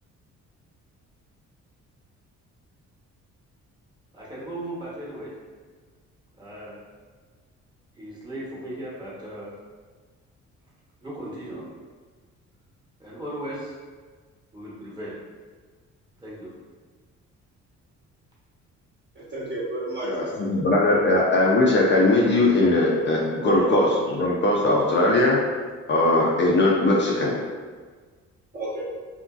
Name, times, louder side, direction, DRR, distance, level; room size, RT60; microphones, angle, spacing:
voice 1, 4.1-5.3 6.4-6.8 8.0-9.5 11.0-11.6 13.0-13.7 14.5-15.1 16.2-16.5, right 1 dB, 15° right, -7 dB, 1.1 m, -36 dB
voice 2, 19.1-20.3 21.0-21.1 23.4-24.1 28.5-28.8, right 2 dB, 35° right, -6 dB, 1.0 m, -30 dB
voice 3, 20.0-25.4 25.9-27.4, left 2 dB, 40° left, -3 dB, 0.5 m, -20 dB
2.8 x 2.6 x 2.4 m, 1.5 s
cardioid pair, 90°, 30 cm